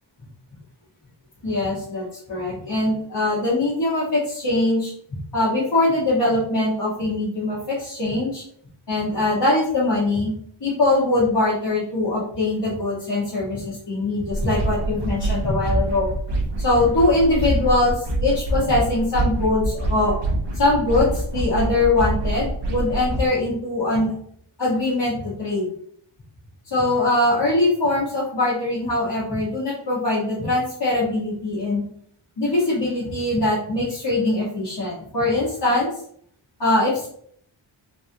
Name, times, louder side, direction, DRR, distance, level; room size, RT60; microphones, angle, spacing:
voice 1, 1.4-8.4 8.9-10.3 10.6-16.1 16.6-20.2 20.5-24.1 24.6-25.7 26.7-31.8 32.4-35.9 36.6-37.1, left 2 dB, 50° left, -10 dB, 1.4 m, -22 dB
sound 1, 14.3-23.3, right 1 dB, 60° right, 0.8 m, -25 dB
3.3 x 2.4 x 2.7 m, 0.63 s
wide cardioid pair, 85°, 47 cm